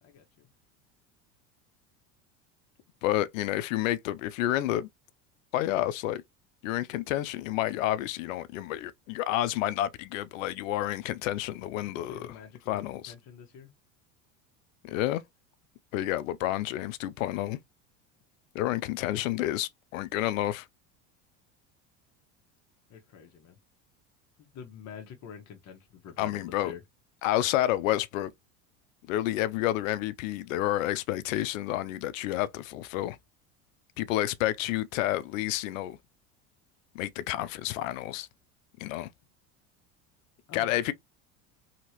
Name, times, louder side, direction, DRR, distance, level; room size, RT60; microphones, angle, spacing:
voice 1, 0.0-0.5 11.8-13.7 22.9-23.6 24.4-26.8 40.5-40.7, left 7 dB, 45° left, 1.0 m, -47 dB
voice 2, 3.0-4.9 5.5-6.2 6.6-12.3 12.7-13.1 14.8-15.2 15.9-17.6 18.5-20.7 26.2-26.7 27.2-28.3 29.1-33.2 34.0-36.0 36.9-38.3 38.8-39.1 40.5-40.9, left 14 dB, 80° left, 0.5 m, -29 dB
2.8 x 2.8 x 2.9 m
hypercardioid pair, 90°, 39 cm